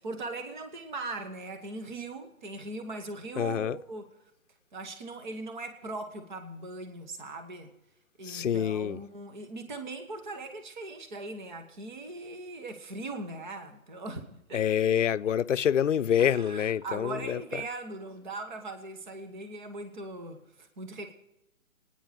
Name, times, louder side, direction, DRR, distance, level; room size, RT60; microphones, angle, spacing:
voice 1, 0.0-4.1 4.7-7.7 8.2-14.6 16.2-21.1, right 2 dB, 35° right, 1.6 m, -40 dB
voice 2, 3.4-3.8 8.2-9.0 14.5-17.4, left 9 dB, 60° left, 0.6 m, -26 dB
25.0 x 10.0 x 5.1 m
hypercardioid pair, 165°, 41 cm